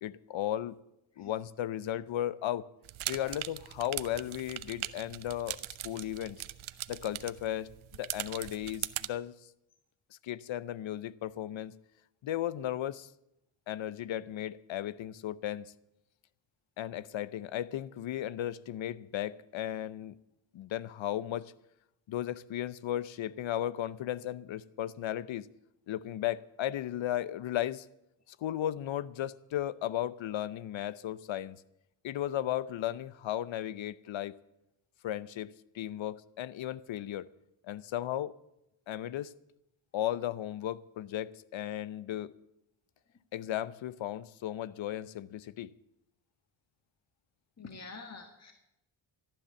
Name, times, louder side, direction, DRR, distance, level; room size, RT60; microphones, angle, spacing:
voice 1, 0.0-0.8 1.2-2.6 3.1-5.6 5.8-6.4 6.9-9.3 10.2-11.8 12.2-13.1 13.7-15.7 16.8-20.2 20.5-21.5 22.1-25.5 25.9-27.9 28.4-31.6 32.0-34.4 35.0-37.3 37.7-38.3 38.9-39.3 39.9-42.3 43.3-45.7, left 12 dB, 70° left, 0.8 m, -35 dB
sound 1, 2.8-9.1, right 14 dB, 80° right, 0.8 m, -40 dB
voice 2, 47.6-48.5, left 4 dB, 35° left, 1.8 m, -46 dB
15.0 x 10.5 x 7.0 m
cardioid pair, 65°, 48 cm